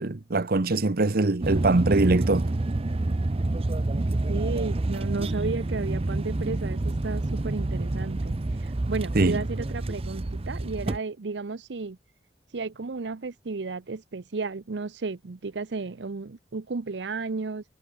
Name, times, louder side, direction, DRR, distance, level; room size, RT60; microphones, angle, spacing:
voice 1, 0.0-2.5 9.1-9.4, right 2 dB, 60° right, 0.9 m, -23 dB
sound 1, 1.4-11.0, right 2 dB, 35° right, 0.6 m, -28 dB
voice 2, 4.3-12.0 12.5-17.6, right 4 dB, 85° right, 0.7 m, -33 dB
head